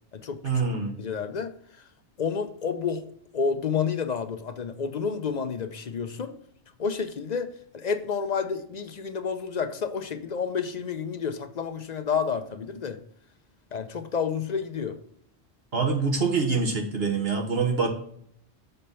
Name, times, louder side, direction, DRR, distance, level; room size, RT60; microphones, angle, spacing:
voice 1, 0.4-0.9 15.7-17.9, right 4 dB, 60° right, 1 dB, 1.6 m, -25 dB
voice 2, 1.0-1.5 2.2-3.0 3.3-6.3 6.8-13.0 13.7-15.0, left 6 dB, 45° left, 8 dB, 0.6 m, -30 dB
6.8 x 4.4 x 5.4 m, 0.66 s
omnidirectional pair, 1.2 m